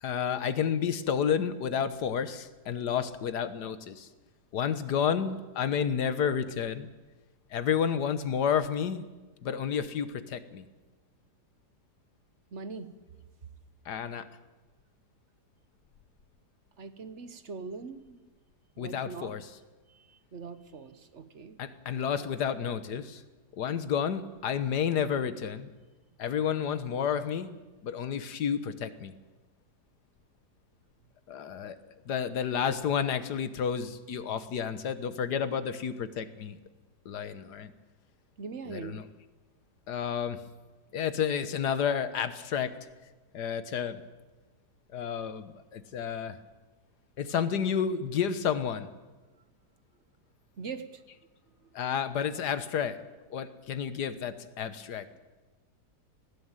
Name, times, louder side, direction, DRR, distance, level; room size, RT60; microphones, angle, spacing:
voice 1, 0.0-4.1 4.5-6.9 7.5-9.0 9.4-10.7 13.8-14.3 18.8-19.5 21.6-23.2 23.6-25.7 26.2-29.1 31.3-31.8 32.1-36.6 37.0-37.7 38.6-39.1 39.9-40.4 40.9-42.7 43.3-44.0 44.9-46.4 47.2-48.9 51.7-53.0 53.3-55.1, left 7 dB, 80° left, 12 dB, 1.7 m, -31 dB
voice 2, 12.5-12.9 16.8-18.2 18.8-19.3 19.9-21.6 38.4-39.0 50.6-51.0 51.6-51.7, right 5 dB, 50° right, 11 dB, 1.3 m, -42 dB
19.0 x 15.0 x 9.0 m, 1.2 s
omnidirectional pair, 1.7 m